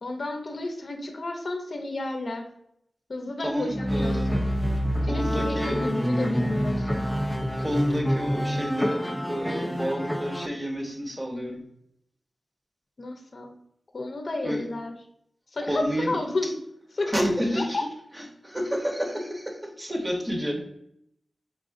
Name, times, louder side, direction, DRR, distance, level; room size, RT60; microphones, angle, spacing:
voice 1, 0.0-2.4 3.1-4.4 5.1-7.0 13.0-13.5 13.9-14.9 15.5-16.5 16.9-17.1 17.6-17.8, left 2 dB, 55° left, 3 dB, 0.7 m, -31 dB
voice 2, 3.4-4.4 5.0-5.8 7.6-11.6 14.4-14.6 15.7-16.2 17.1-17.9 18.4-20.6, equal, 15° right, 1 dB, 0.9 m, -29 dB
sound 1, 3.7-10.5, equal, ahead, 0.4 m, -27 dB
4.6 x 3.8 x 2.5 m, 0.72 s
wide cardioid pair, 115°, 0 cm